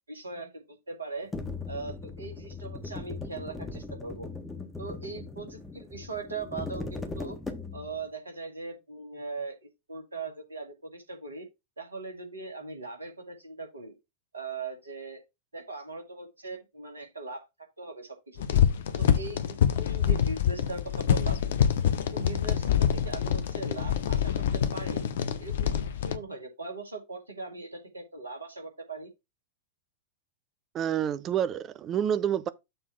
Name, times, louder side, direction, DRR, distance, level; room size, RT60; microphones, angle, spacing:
voice 1, 0.1-1.3 1.7-4.3 4.8-7.4 7.7-9.6 9.9-11.5 11.8-13.9 14.3-15.2 15.5-17.4 17.8-18.6 19.0-21.4 22.1-25.0 25.4-29.1, right 3 dB, 75° right, 2.2 m, -40 dB
sound 1, 1.3-8.0, left 3 dB, 10° left, 1.5 m, -39 dB
sound 2, 18.4-26.2, left 9 dB, 60° left, 0.7 m, -26 dB
voice 2, 30.7-32.5, right 9 dB, 30° right, 0.6 m, -28 dB
6.9 x 3.6 x 5.9 m
figure-of-eight pair, 90°, 0 cm